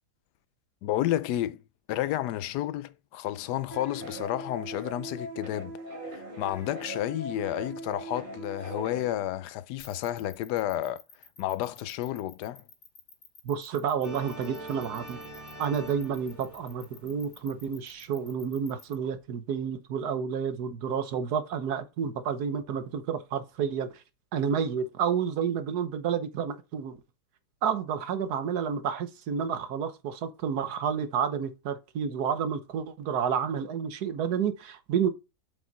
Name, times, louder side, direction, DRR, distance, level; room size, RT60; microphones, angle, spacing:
voice 1, 0.8-1.6 1.9-5.8 6.1-11.0 11.4-12.6, left 13 dB, 80° left, 1.2 m, -31 dB
sound 1, 3.7-9.1, right 1 dB, 30° right, 2.2 m, -40 dB
sound 2, 9.8-18.9, left 5 dB, 40° left, 1.2 m, -52 dB
voice 2, 13.4-15.2 15.6-24.0 24.3-27.0 27.6-35.1, right 7 dB, 70° right, 1.5 m, -30 dB
sound 3, 14.0-18.5, right 2 dB, 15° right, 3.3 m, -44 dB
7.7 x 5.5 x 4.0 m
omnidirectional pair, 1.8 m